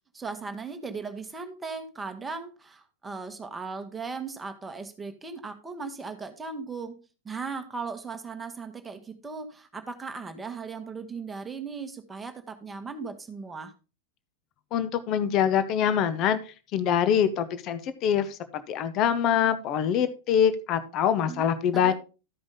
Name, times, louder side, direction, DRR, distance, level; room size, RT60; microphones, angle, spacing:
voice 1, 0.1-7.0 7.2-13.7 21.3-21.9, right 4 dB, 15° right, 6 dB, 1.2 m, -37 dB
voice 2, 14.7-21.9, left 8 dB, 35° left, 11 dB, 0.8 m, -25 dB
13.0 x 5.1 x 3.7 m, 0.33 s
figure-of-eight pair, 90°, 0 cm